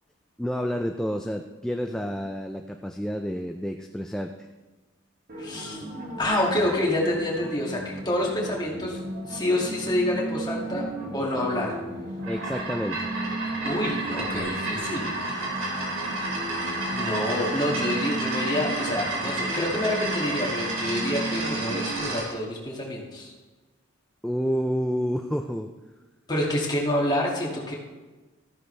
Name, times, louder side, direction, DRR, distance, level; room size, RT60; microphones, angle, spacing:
voice 1, 0.4-4.3 12.3-13.1 24.2-25.7, equal, 5° left, 4 dB, 0.4 m, -29 dB
sound 1, 5.3-22.1, right 2 dB, 45° right, 1.5 m, -35 dB
voice 2, 5.4-5.9 6.2-9.0 9.3-10.9 11.1-11.8 13.6-15.4 16.9-23.3 26.3-27.7, left 1 dB, 20° left, -3 dB, 2.1 m, -27 dB
sound 2, 12.1-22.3, right 2 dB, 90° right, 3.2 m, -31 dB
13.5 x 10.0 x 3.3 m, 1.2 s
head